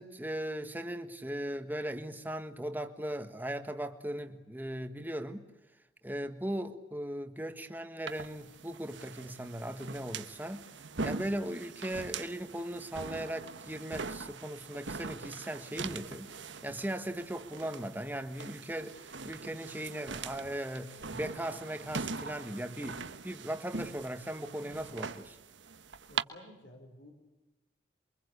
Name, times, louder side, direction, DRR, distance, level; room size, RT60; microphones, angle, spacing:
voice 1, 0.0-5.4 6.0-10.7 11.0-16.3 16.6-25.4, right 1 dB, 10° right, 7 dB, 1.6 m, -38 dB
sound 1, 8.1-26.2, right 4 dB, 80° right, 1.3 m, -42 dB
voice 2, 26.1-27.1, left 1 dB, 75° left, 2 dB, 5.3 m, -53 dB
28.5 x 24.0 x 8.3 m, 1.0 s
head